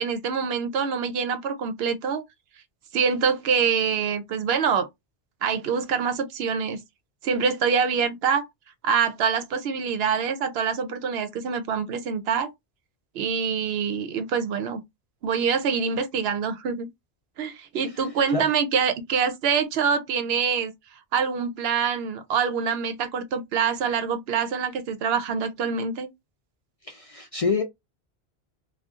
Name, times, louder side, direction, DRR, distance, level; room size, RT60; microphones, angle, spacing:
voice 1, 0.0-2.2 2.9-4.9 5.4-6.8 7.2-8.5 8.8-12.5 13.1-14.8 15.2-16.9 17.4-20.7 21.1-26.1, right 6 dB, 75° right, 0.8 m, -25 dB
voice 2, 26.8-27.6, left 4 dB, 50° left, 0.4 m, -26 dB
2.5 x 2.2 x 3.5 m
omnidirectional pair, 1.1 m